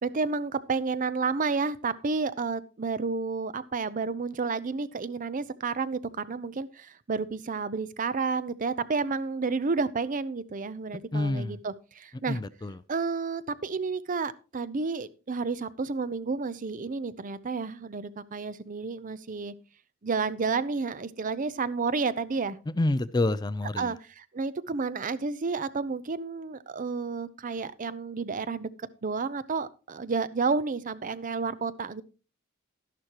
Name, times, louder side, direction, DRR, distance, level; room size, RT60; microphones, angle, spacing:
voice 1, 0.0-12.4 12.9-19.5 20.0-22.6 23.8-28.7 29.0-32.0, right 4 dB, 40° right, 16 dB, 0.6 m, -31 dB
voice 2, 11.1-11.6 12.3-12.7 22.8-23.9, left 2 dB, 20° left, 16 dB, 0.4 m, -27 dB
12.0 x 11.0 x 2.9 m, 0.34 s
head